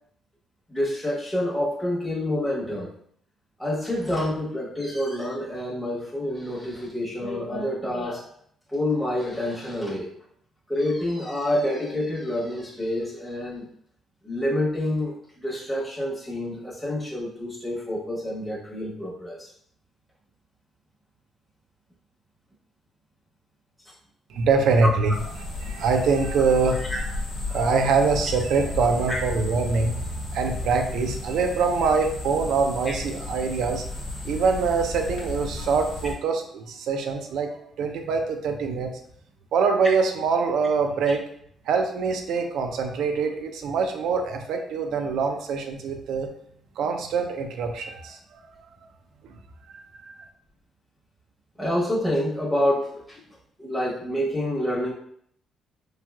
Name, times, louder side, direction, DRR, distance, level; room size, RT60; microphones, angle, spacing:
voice 1, 0.7-2.9 3.6-8.3 8.7-10.1 10.7-13.7 14.2-19.5 26.9-27.0 29.1-29.2 51.6-53.2 53.6-54.9, left 1 dB, ahead, -5 dB, 0.8 m, -27 dB
voice 2, 24.3-26.8 27.5-30.1 30.3-33.9 34.2-38.9 39.5-41.2 41.7-46.3 46.8-48.4 49.2-49.4 49.7-49.8, right 4 dB, 80° right, 5 dB, 0.4 m, -24 dB
sound 1, 25.1-36.1, left 3 dB, 85° left, 0.8 m, -34 dB
3.2 x 2.6 x 2.3 m, 0.66 s
cardioid pair, 90°, 0 cm